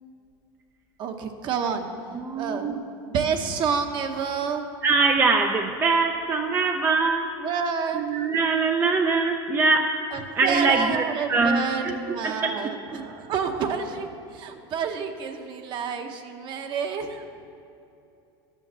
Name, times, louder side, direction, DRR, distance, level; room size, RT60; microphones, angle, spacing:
voice 1, 1.0-1.9 2.4-2.7 3.1-4.6 7.4-8.0 10.1-17.2, right 6 dB, 40° right, 6 dB, 1.0 m, -29 dB
voice 2, 2.1-2.8 4.8-7.3 7.9-9.9 10.4-11.0 11.3-12.5, right 4 dB, 20° right, 4 dB, 0.5 m, -23 dB
11.5 x 7.1 x 6.9 m, 2.7 s
supercardioid pair, 140°, 12 cm